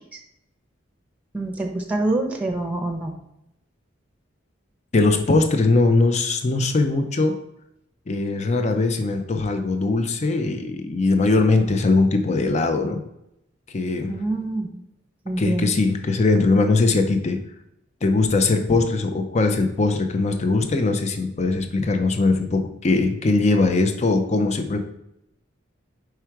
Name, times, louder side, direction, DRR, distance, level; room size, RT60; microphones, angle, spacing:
voice 1, 1.3-3.2 14.1-14.7 15.2-15.7, right 2 dB, 10° right, 2 dB, 0.8 m, -26 dB
voice 2, 4.9-7.4 8.1-13.0 13.7-14.1 15.4-17.4 18.0-24.8, left 3 dB, 35° left, 6 dB, 0.5 m, -20 dB
4.8 x 4.6 x 4.5 m, 0.81 s
head